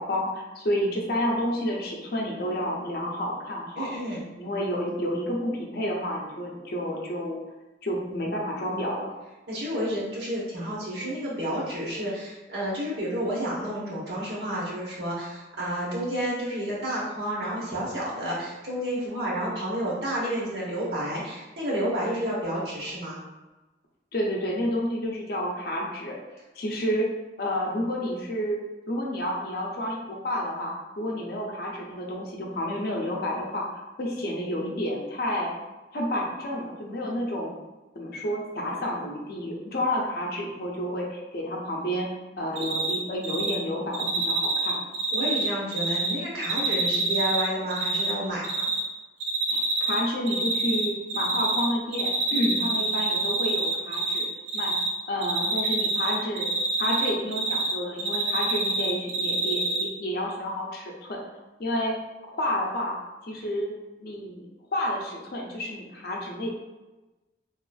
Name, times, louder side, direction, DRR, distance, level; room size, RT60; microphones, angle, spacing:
voice 1, 0.0-3.9 4.4-7.4 7.8-9.1 24.1-26.2 26.6-27.1 27.4-28.6 28.9-33.7 34.0-35.5 35.9-37.5 38.0-42.1 42.4-44.8 49.5-54.3 54.5-54.8 55.1-56.5 56.8-61.2 61.6-61.9 62.3-63.0 63.2-63.7 64.0-64.4 64.7-66.5, equal, 55° left, -2 dB, 0.5 m, -30 dB
voice 2, 3.7-4.2 9.5-23.2 45.1-48.6, right 1 dB, 65° right, -6 dB, 0.9 m, -30 dB
Cricket, 42.6-43.0 43.2-43.6 43.9-46.1 46.4-48.1 48.4-48.8 49.2-50.0 50.3-51.7 51.9-54.2 54.5-54.9 55.2-57.7 58.0-59.8, right 3 dB, 80° right, 0.5 m, -26 dB
2.9 x 2.4 x 2.3 m, 1.1 s
head